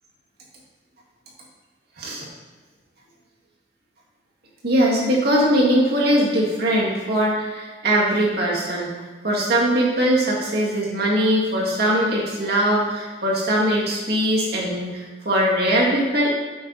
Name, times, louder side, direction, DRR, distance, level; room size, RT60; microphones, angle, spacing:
voice 1, 4.6-8.9 9.2-16.3, equal, 60° right, -4 dB, 2.0 m, -21 dB
8.7 x 5.7 x 4.0 m, 1.3 s
head